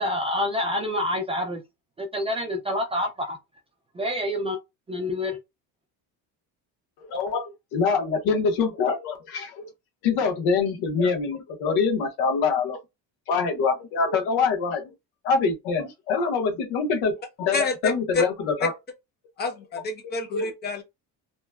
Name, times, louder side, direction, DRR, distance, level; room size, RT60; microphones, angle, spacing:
voice 1, 0.0-1.6 2.0-3.4 3.9-4.6 4.9-5.4, left 1 dB, 15° right, 0.3 m, -27 dB
voice 2, 7.0-9.7 10.0-12.8 13.3-14.8 15.2-18.7 20.3-20.5, left 5 dB, 85° left, 1.1 m, -25 dB
voice 3, 17.5-18.3 19.4-20.8, left 4 dB, 25° left, 0.7 m, -28 dB
2.9 x 2.1 x 2.2 m
cardioid pair, 135°, 38 cm